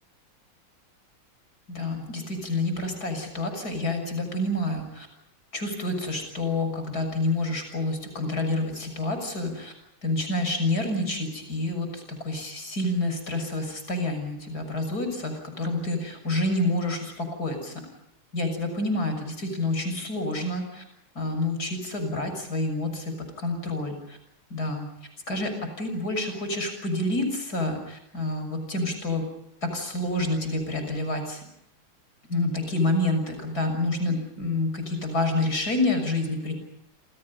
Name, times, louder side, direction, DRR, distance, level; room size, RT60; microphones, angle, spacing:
voice 1, 1.7-5.1 5.5-9.7 10.0-17.8 18.3-20.8 21.2-24.2 24.5-24.9 25.3-29.3 29.6-31.4 32.3-36.5, left 2 dB, 45° left, 6 dB, 7.2 m, -28 dB
29.0 x 27.5 x 5.6 m, 0.81 s
omnidirectional pair, 2.3 m